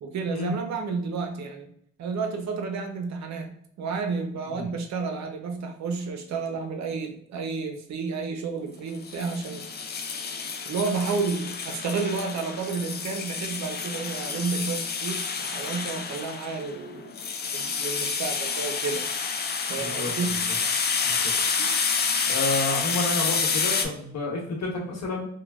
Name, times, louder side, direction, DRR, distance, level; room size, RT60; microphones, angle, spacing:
voice 1, 0.0-1.7 2.0-9.7 10.6-17.1 17.5-19.0 19.7-20.4 21.6-21.7, right 4 dB, 65° right, 5 dB, 0.7 m, -31 dB
sound 1, 9.0-23.8, left 5 dB, 35° left, 0.4 m, -29 dB
voice 2, 19.8-20.4 21.0-21.3 22.3-25.3, left 2 dB, 60° left, -1 dB, 1.0 m, -30 dB
3.2 x 2.2 x 2.3 m, 0.69 s
cardioid pair, 90°, 30 cm